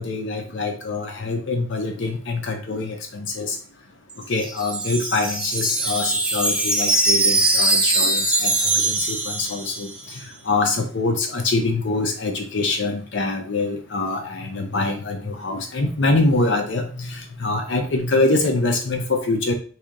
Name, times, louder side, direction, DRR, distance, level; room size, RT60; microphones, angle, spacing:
voice 1, 0.0-3.6 4.3-19.5, left 3 dB, 70° left, 4 dB, 0.6 m, -24 dB
Wind chime, 4.1-10.1, right 2 dB, 5° right, 0.6 m, -22 dB
4.8 x 2.8 x 3.7 m, 0.43 s
head